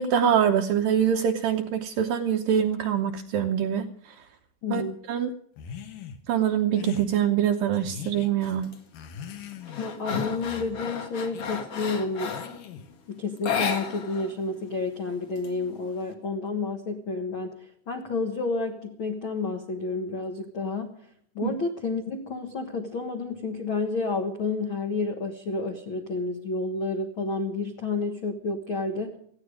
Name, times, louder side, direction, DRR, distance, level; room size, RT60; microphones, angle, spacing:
voice 1, 0.0-4.2 4.7-4.8 5.1-5.3 6.3-8.7 21.4-21.5, right 9 dB, 80° right, 4 dB, 2.0 m, -24 dB
voice 2, 4.6-5.0 9.7-12.4 13.1-21.0 21.3-29.2, left 3 dB, 80° left, 4 dB, 1.1 m, -30 dB
sound 1, 5.6-6.2 6.7-7.1 7.7-8.3 8.9-9.9 10.3-10.7 11.3-11.6 12.3-12.9, left 8 dB, 60° left, 2.6 m, -40 dB
sound 2, 8.4-8.8 9.2-12.6 13.4-14.3 14.6-14.7 15.1-16.0, left 6 dB, 45° left, 2.1 m, -33 dB
19.0 x 15.0 x 5.0 m, 0.64 s
omnidirectional pair, 5.2 m